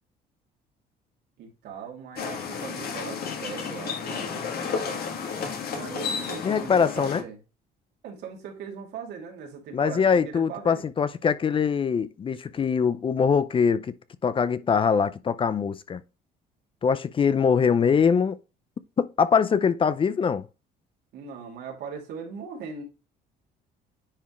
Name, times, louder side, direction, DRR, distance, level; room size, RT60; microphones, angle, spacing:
voice 1, 1.4-5.0 5.7-7.4 8.0-10.8 21.1-22.8, right 6 dB, 80° right, 2.6 m, -39 dB
sound 1, 2.2-7.2, left 6 dB, 65° left, 1.8 m, -32 dB
voice 2, 6.4-7.2 9.7-13.9 14.2-16.0 16.8-18.4 19.0-20.4, left 6 dB, 30° left, 0.5 m, -23 dB
9.9 x 3.6 x 3.2 m
cardioid pair, 110°, 17 cm